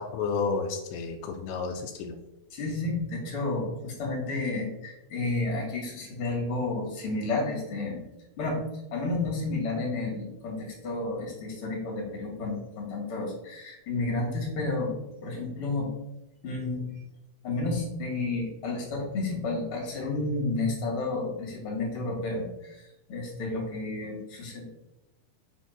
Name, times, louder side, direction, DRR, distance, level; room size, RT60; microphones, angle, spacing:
voice 1, 0.1-2.2, left 4 dB, 85° left, 4 dB, 1.9 m, -31 dB
voice 2, 2.5-8.0 8.4-8.6 8.9-15.9 16.4-16.9 17.4-24.7, left 2 dB, 40° left, -1 dB, 2.8 m, -31 dB
7.0 x 4.4 x 5.9 m, 0.92 s
omnidirectional pair, 4.4 m